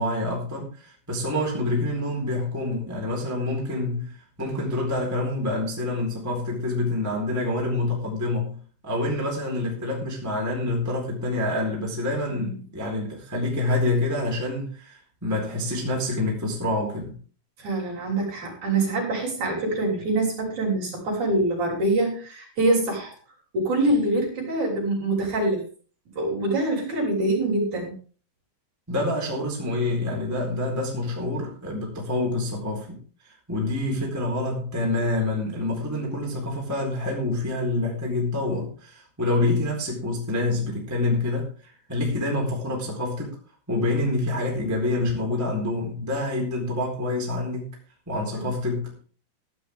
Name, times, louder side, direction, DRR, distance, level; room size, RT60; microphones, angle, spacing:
voice 1, 0.0-8.6 8.8-17.1 28.9-33.0 33.2-43.4 43.7-47.8 48.1-49.0, left 2 dB, 5° right, 3.7 m, -27 dB
voice 2, 12.3-12.6 17.6-23.1 23.5-25.7 26.2-27.9 48.3-48.5, right 2 dB, 40° right, 6.8 m, -25 dB
16.0 x 11.5 x 3.7 m
omnidirectional pair, 5.2 m